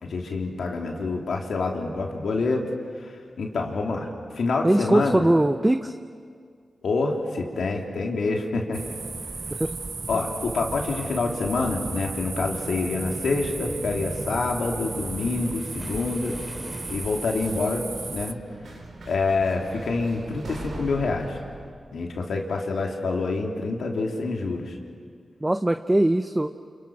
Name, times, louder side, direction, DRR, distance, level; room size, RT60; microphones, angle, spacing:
voice 1, 0.0-2.7 3.0-4.1 4.3-5.2 6.8-8.8 10.1-16.4 16.9-17.9 18.1-18.4 19.0-21.4 21.9-24.8, left 3 dB, 90° left, 1 dB, 3.3 m, -27 dB
voice 2, 4.6-5.9 9.5-9.7 25.4-26.5, right 1 dB, 20° right, 9 dB, 0.8 m, -21 dB
sound 1, 8.7-18.3, right 4 dB, 50° right, 0.7 m, -35 dB
Waves surf, 14.6-17.9, left 1 dB, 15° left, 4.3 m, -45 dB
sound 2, 17.6-21.7, right 2 dB, 80° right, 4.0 m, -42 dB
29.5 x 29.0 x 6.1 m, 2.1 s
cardioid pair, 70°, 0 cm